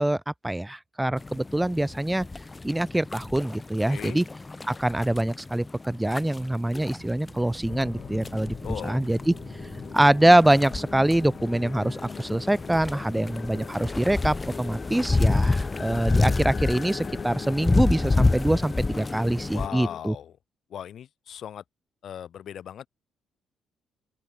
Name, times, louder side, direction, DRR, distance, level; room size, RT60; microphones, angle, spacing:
voice 1, 0.0-2.3 2.6-4.2 4.7-9.3 9.9-20.1, right 1 dB, 10° right, 0.8 m, -24 dB
sound 1, 1.2-19.7, left 3 dB, 20° left, 0.5 m, -29 dB
voice 2, 3.9-4.2 8.6-9.0 19.5-20.3 20.7-21.6 22.0-22.9, left 9 dB, 65° left, 0.8 m, -37 dB
sound 2, 6.7-11.7, right 4 dB, 30° right, 2.3 m, -47 dB
sound 3, 7.7-20.0, left 6 dB, 45° left, 3.4 m, -41 dB
open air
cardioid pair, 90°, 0 cm